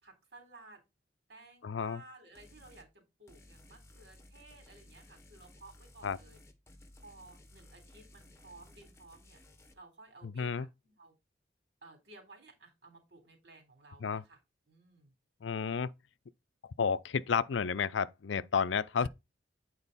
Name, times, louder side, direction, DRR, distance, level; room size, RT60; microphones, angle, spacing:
voice 1, 0.0-0.8 1.3-6.4 7.0-9.4 9.7-11.2 11.8-14.4 14.7-15.1 19.0-19.1, right 2 dB, 65° right, 3.6 m, -56 dB
voice 2, 1.6-2.0 6.0-6.2 10.4-10.7 14.0-14.2 15.4-15.9 16.8-19.1, left 6 dB, 80° left, 0.5 m, -31 dB
sound 1, 2.4-2.9 3.3-9.7, left 1 dB, 15° left, 1.1 m, -57 dB
9.0 x 4.5 x 4.1 m
head